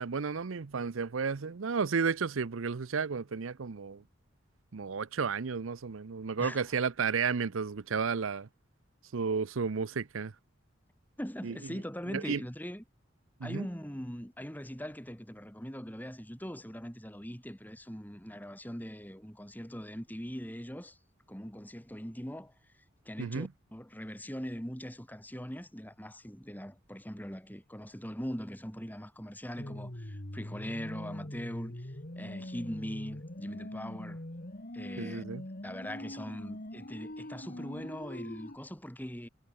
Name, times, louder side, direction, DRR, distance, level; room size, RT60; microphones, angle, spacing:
voice 1, 0.0-4.0 4.7-8.5 9.1-10.3 11.4-11.6 12.1-12.4 13.4-13.7 23.2-23.5 35.0-35.4, right 5 dB, 75° right, 0.6 m, -32 dB
voice 2, 11.2-12.8 13.4-21.0 21.3-22.5 23.1-34.2 34.7-35.2 35.6-39.3, equal, 10° left, 5.4 m, -41 dB
sound 1, 29.6-38.6, left 1 dB, 45° left, 2.0 m, -43 dB
head